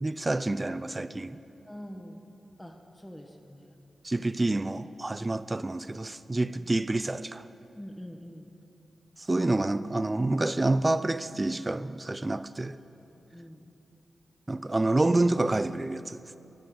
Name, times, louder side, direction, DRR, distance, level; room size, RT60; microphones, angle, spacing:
voice 1, 0.0-1.4 4.0-7.4 9.3-12.8 14.5-16.4, right 2 dB, 30° right, 0.3 m, -28 dB
voice 2, 1.7-2.2 2.6-3.7 7.7-8.5 13.3-13.7, equal, 15° left, 1.1 m, -44 dB
13.5 x 9.1 x 3.8 m
cardioid pair, 45°, 0 cm